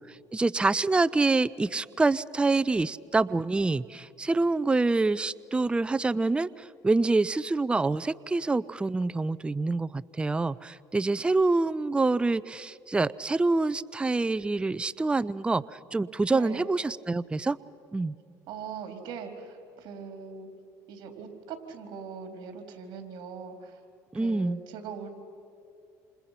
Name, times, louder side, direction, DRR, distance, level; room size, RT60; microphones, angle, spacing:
voice 1, 0.1-17.6 17.9-18.1 24.1-24.6, right 3 dB, 10° right, 18 dB, 0.5 m, -26 dB
voice 2, 16.3-16.7 18.5-20.5 20.9-23.8 24.1-25.1, right 6 dB, 65° right, 5 dB, 3.9 m, -41 dB
28.0 x 28.0 x 5.9 m, 2.5 s
supercardioid pair, 90°, 8 cm